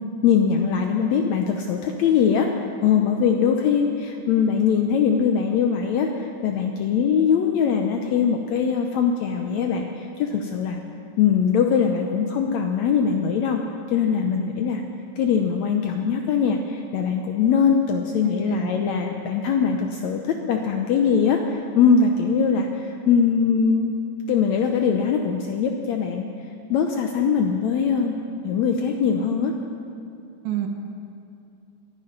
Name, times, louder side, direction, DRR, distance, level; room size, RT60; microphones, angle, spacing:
voice 1, 0.2-2.5 2.8-10.8 11.2-13.6 13.9-14.8 15.2-23.9 24.3-26.2 26.7-28.2 28.4-29.5, left 6 dB, 75° left, 3 dB, 1.7 m, -21 dB
voice 2, 18.2-18.7 30.4-30.7, right 11 dB, 70° right, 4 dB, 2.1 m, -27 dB
23.0 x 8.3 x 5.3 m, 2.5 s
omnidirectional pair, 3.8 m